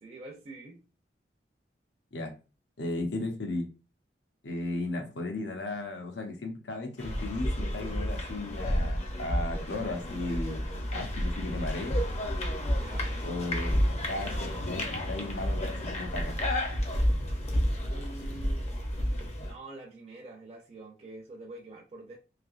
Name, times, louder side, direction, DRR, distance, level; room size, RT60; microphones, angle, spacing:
voice 1, 0.0-0.8 12.8-13.1 17.8-18.8 19.4-22.2, right 2 dB, 35° right, 0.5 m, -46 dB
voice 2, 2.8-3.7 4.4-12.0 13.2-13.8 14.1-16.4, left 2 dB, 75° left, 0.7 m, -35 dB
sound 1, 7.0-19.5, equal, 40° left, 0.6 m, -31 dB
3.3 x 2.7 x 2.4 m
head